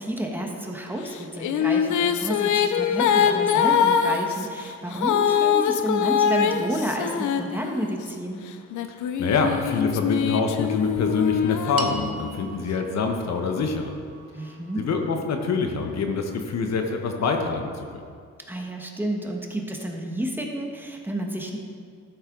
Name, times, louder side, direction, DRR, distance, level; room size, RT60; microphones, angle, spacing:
voice 1, 0.0-8.4 14.3-14.8 18.5-21.6, right 1 dB, 5° right, 0 dB, 1.5 m, -30 dB
Female singing, 1.1-8.0 8.7-12.5, left 8 dB, 75° left, 0.7 m, -23 dB
voice 2, 8.9-13.9 14.8-18.0, left 4 dB, 60° left, 4 dB, 1.2 m, -26 dB
sound 1, 11.8-16.2, right 5 dB, 50° right, 1.1 m, -42 dB
13.5 x 8.0 x 3.9 m, 2.1 s
cardioid pair, 90°, 30 cm